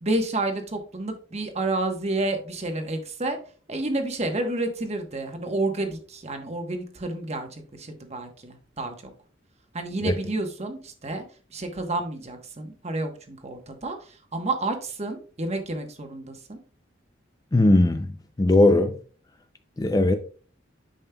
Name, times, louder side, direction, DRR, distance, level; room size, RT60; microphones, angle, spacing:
voice 1, 0.0-3.4 3.7-9.1 9.7-11.2 11.5-16.6, right 2 dB, 35° right, 1.1 m, -30 dB
voice 2, 17.5-18.1 18.4-19.0 19.8-20.1, left 2 dB, 20° left, 0.4 m, -18 dB
10.0 x 5.2 x 2.2 m
head